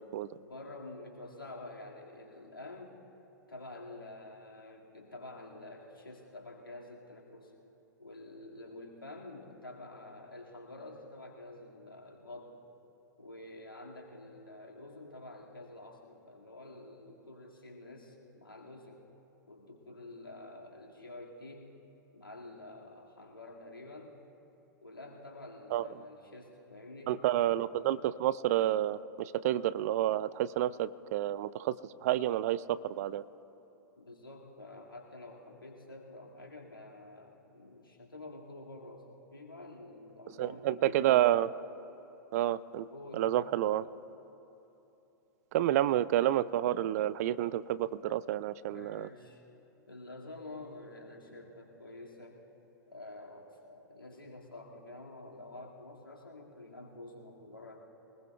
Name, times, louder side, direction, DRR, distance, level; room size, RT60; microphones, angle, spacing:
voice 1, 0.3-3.0 3.5-7.5 8.0-12.6 13.2-19.1 19.5-21.8 22.1-24.2 24.8-27.5 34.0-41.2 42.9-43.4 48.7-49.4 49.9-52.4 52.9-57.8, left 2 dB, 85° left, -2 dB, 2.2 m, -48 dB
voice 2, 27.1-31.7 32.0-33.2 40.4-41.5 42.3-42.9 43.1-43.9 45.5-49.1, right 13 dB, 45° right, 18 dB, 0.4 m, -29 dB
23.0 x 20.0 x 2.4 m, 3.0 s
figure-of-eight pair, 105°, 11 cm